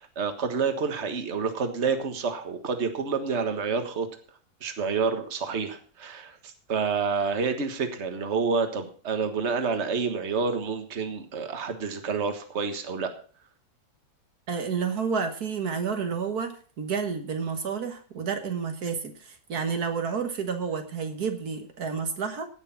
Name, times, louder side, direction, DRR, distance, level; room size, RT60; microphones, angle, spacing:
voice 1, 0.0-4.1 4.6-13.1, right 5 dB, 45° right, 7 dB, 1.7 m, -28 dB
voice 2, 14.5-22.5, right 6 dB, 75° right, 6 dB, 1.9 m, -30 dB
16.5 x 6.7 x 5.8 m, 0.42 s
omnidirectional pair, 1.7 m